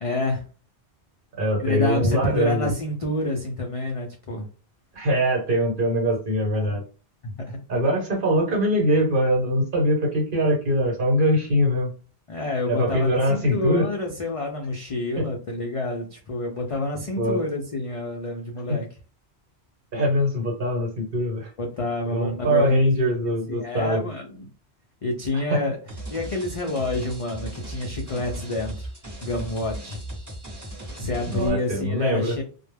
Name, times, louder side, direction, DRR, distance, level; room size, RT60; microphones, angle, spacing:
voice 1, 0.0-0.4 1.6-4.5 6.5-6.8 7.2-7.6 12.3-18.9 21.6-22.8 23.5-24.5 25.0-25.8 26.1-28.9 29.2-30.0 31.0-32.4, left 2 dB, 55° left, 1 dB, 0.3 m, -28 dB
voice 2, 1.4-2.7 4.9-6.8 7.7-11.9 12.7-13.9 15.2-15.3 17.2-17.4 18.7-18.8 19.9-21.5 22.1-24.0 25.3-25.6 31.3-32.3, equal, 55° right, 0 dB, 1.1 m, -22 dB
sound 1, 25.9-31.5, right 1 dB, 20° right, 1.0 m, -37 dB
2.2 x 2.0 x 3.2 m, 0.37 s
omnidirectional pair, 1.1 m